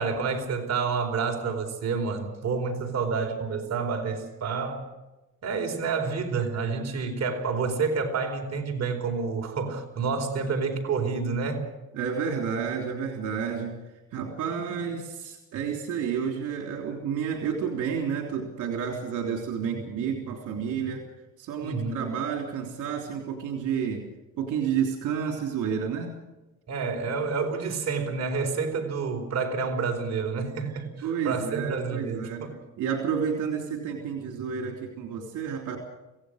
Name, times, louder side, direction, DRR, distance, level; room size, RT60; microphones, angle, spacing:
voice 1, 0.0-4.9 5.4-11.7 21.6-22.1 26.7-32.6, right 5 dB, 60° right, 3 dB, 4.6 m, -29 dB
voice 2, 11.9-13.8 14.1-21.1 21.4-24.1 24.4-26.2 31.0-32.5 32.8-35.8, right 7 dB, 85° right, 2 dB, 3.5 m, -30 dB
26.0 x 17.5 x 6.6 m, 1.0 s
cardioid pair, 90°, 30 cm